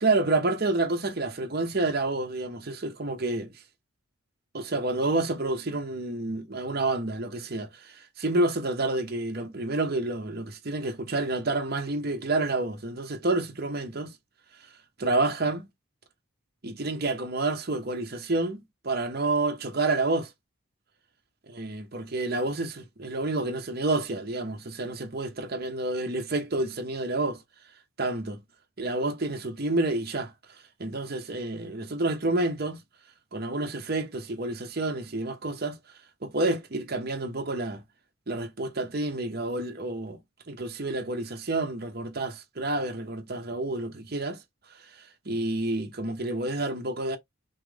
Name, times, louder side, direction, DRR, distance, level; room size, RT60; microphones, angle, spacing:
voice 1, 0.0-3.5 4.5-14.1 15.0-15.7 16.6-20.3 21.5-27.4 28.0-28.4 28.8-30.3 30.8-32.8 33.3-35.8 36.2-37.8 38.3-40.2 40.5-44.4 45.3-47.2, right 2 dB, 45° right, 0.9 m, -29 dB
5.7 x 2.0 x 3.4 m
head